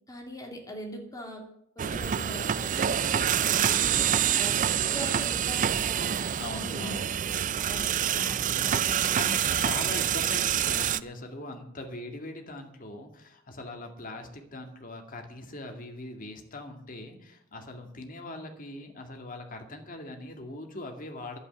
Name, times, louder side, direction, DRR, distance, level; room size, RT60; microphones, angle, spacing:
voice 1, 0.1-1.4 1.8-4.0 4.3-6.1 6.5-7.0 7.2-7.3 7.7-9.7, equal, 15° left, 1 dB, 3.0 m, -41 dB
sound 1, 1.8-11.0, right 9 dB, 40° right, 0.4 m, -27 dB
voice 2, 4.2-5.0 6.4-7.1 8.9-21.4, left 2 dB, 40° left, 4 dB, 2.2 m, -41 dB
11.0 x 8.4 x 9.5 m, 0.74 s
head